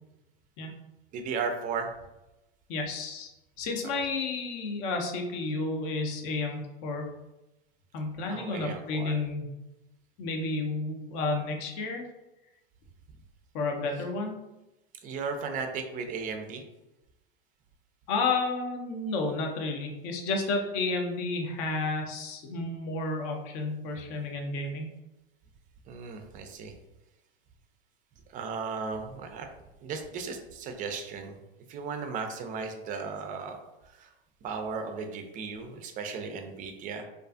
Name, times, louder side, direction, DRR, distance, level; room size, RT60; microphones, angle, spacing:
voice 1, 1.1-1.9 8.3-9.1 15.0-16.6 25.9-26.7 28.3-29.5 29.8-31.4 31.7-33.6 34.0-34.1 34.4-37.0, right 5 dB, 30° right, 5 dB, 0.4 m, -35 dB
voice 2, 2.7-3.3 3.6-7.1 7.9-9.5 10.2-12.0 13.5-14.4 18.1-24.9, left 3 dB, 50° left, 3 dB, 0.6 m, -31 dB
2.4 x 2.3 x 2.3 m, 0.97 s
hypercardioid pair, 95°, 29 cm